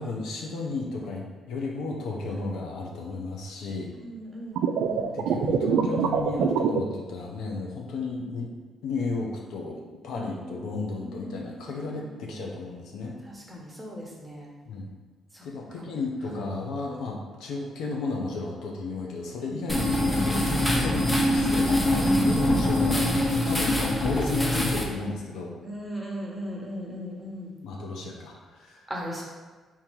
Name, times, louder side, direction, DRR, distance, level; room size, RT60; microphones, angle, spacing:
voice 1, 0.0-3.9 5.0-8.5 8.8-13.2 14.7-14.9 15.4-25.5 27.6-28.8, left 3 dB, 80° left, 0 dB, 0.7 m, -33 dB
voice 2, 4.0-5.4 10.3-12.4 13.2-14.5 15.3-15.5 15.7-15.8 16.3-16.4 20.6-21.0 21.9-22.2 23.2-23.6 25.6-27.5 28.9-29.2, equal, 10° right, -2 dB, 1.1 m, -39 dB
sound 1, 4.6-6.8, right 7 dB, 85° right, 0.3 m, -24 dB
sound 2, 19.7-24.8, left 1 dB, 15° left, 0.7 m, -24 dB
3.7 x 2.9 x 4.5 m, 1.4 s
cardioid pair, 90°, 0 cm